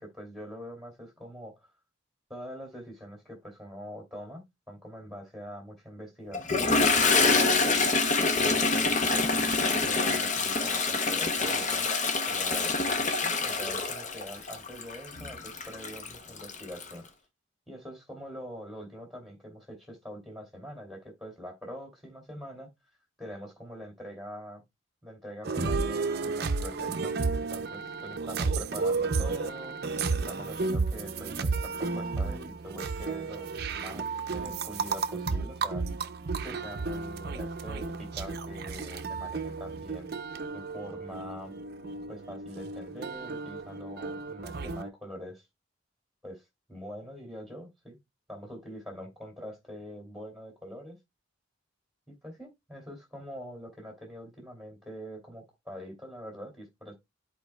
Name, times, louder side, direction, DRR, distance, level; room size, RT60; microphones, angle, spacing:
voice 1, 0.0-1.5 2.3-7.9 8.3-11.9 12.2-12.7 13.2-17.1 17.7-22.7 23.2-24.6 25.0-35.8 36.4-40.1 40.5-41.5 42.1-45.4 46.2-46.4 46.7-48.0 48.3-51.0 52.1-56.9, equal, ahead, 2.6 m, -44 dB
Toilet flush, 6.3-16.9, left 3 dB, 35° left, 0.8 m, -26 dB
sound 1, 25.4-44.9, right 4 dB, 50° right, 0.6 m, -32 dB
13.0 x 4.5 x 2.2 m
head